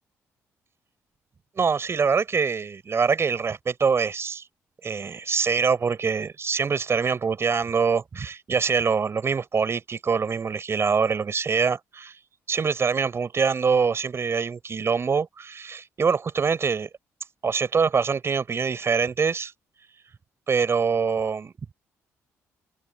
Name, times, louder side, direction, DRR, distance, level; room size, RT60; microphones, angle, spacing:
voice 1, 1.6-4.4 4.8-12.1 12.5-16.9 17.4-19.5 20.5-21.5, right 5 dB, 45° right, 6.0 m, -24 dB
supercardioid pair, 65°, 6 cm